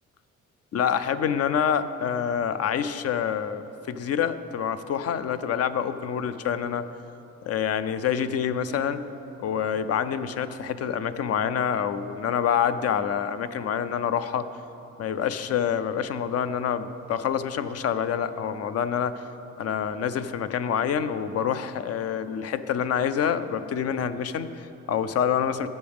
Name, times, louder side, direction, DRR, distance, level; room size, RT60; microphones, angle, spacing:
voice 1, 0.7-6.9 7.4-9.0 9.4-14.5 15.0-19.2 19.6-25.7, left 8 dB, 55° left, 12 dB, 0.5 m, -27 dB
16.5 x 7.1 x 3.6 m, 2.9 s
cardioid pair, 90°, 30 cm